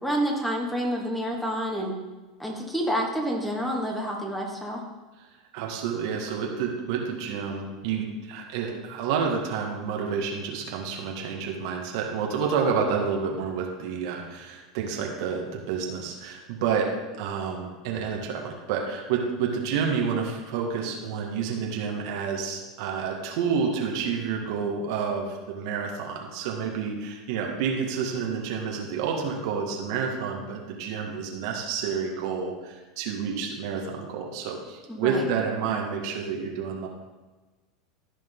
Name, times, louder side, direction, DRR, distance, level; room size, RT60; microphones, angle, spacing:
voice 1, 0.0-2.0 2.4-4.8 34.9-35.3, equal, 5° left, 0 dB, 2.1 m, -28 dB
voice 2, 5.5-16.9 17.2-36.9, right 6 dB, 65° right, 1 dB, 1.7 m, -29 dB
15.0 x 5.1 x 3.8 m, 1.2 s
hypercardioid pair, 95°, 3 cm